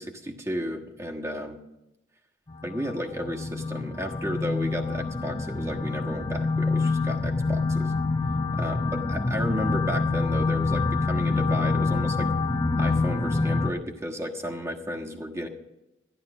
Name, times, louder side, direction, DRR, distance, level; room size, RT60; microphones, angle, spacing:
voice 1, 0.0-1.6 2.6-7.9 8.6-12.3 12.8-15.5, equal, 15° right, 2 dB, 1.4 m, -33 dB
sound 1, 2.5-13.7, left 3 dB, 25° left, 0.7 m, -26 dB
13.5 x 11.5 x 6.0 m, 0.94 s
head